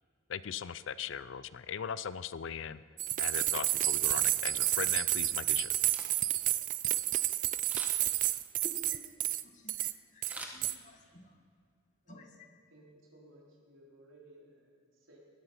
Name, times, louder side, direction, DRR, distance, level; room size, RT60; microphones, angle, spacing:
voice 1, 0.3-2.8 3.2-5.7, left 7 dB, 60° left, 17 dB, 0.4 m, -39 dB
sound 1, 3.0-9.4 9.7-9.9 10.2-10.7, right 14 dB, 40° right, 0.4 m, -30 dB
Camera, 5.9-6.5 7.6-8.2 10.2-11.2 11.6-11.7, right 1 dB, 5° right, 1.2 m, -46 dB
voice 2, 8.6-11.4 12.1-12.3, left 2 dB, 35° left, 4 dB, 1.5 m, -53 dB
voice 3, 12.7-15.2, right 1 dB, 65° right, -3 dB, 3.9 m, -58 dB
19.5 x 12.0 x 5.6 m, 2.2 s
head